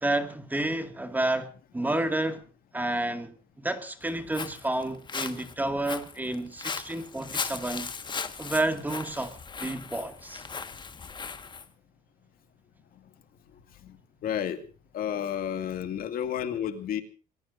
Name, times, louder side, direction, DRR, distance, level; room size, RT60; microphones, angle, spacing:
voice 1, 0.0-2.4 2.7-7.9 8.4-10.4, right 1 dB, 10° right, 2.1 m, -30 dB
Walk footsteps, 4.0-11.7, left 5 dB, 25° left, 1.5 m, -38 dB
voice 2, 14.2-14.6 14.9-17.0, left 9 dB, 60° left, 2.2 m, -31 dB
28.0 x 19.5 x 2.6 m
cardioid pair, 110°, 17 cm